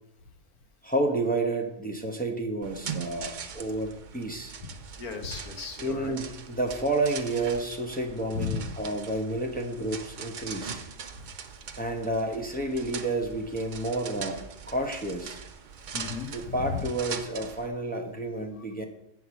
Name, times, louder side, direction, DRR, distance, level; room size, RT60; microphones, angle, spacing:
voice 1, 0.8-4.5 5.8-10.8 11.8-15.4 16.3-18.8, right 2 dB, 10° left, 3 dB, 0.5 m, -30 dB
sound 1, 2.6-17.7, right 6 dB, 70° right, 0.4 m, -41 dB
voice 2, 4.6-6.1 8.3-8.6 15.9-16.8, left 5 dB, 70° left, 5 dB, 1.7 m, -35 dB
7.9 x 4.7 x 7.1 m, 0.82 s
omnidirectional pair, 1.6 m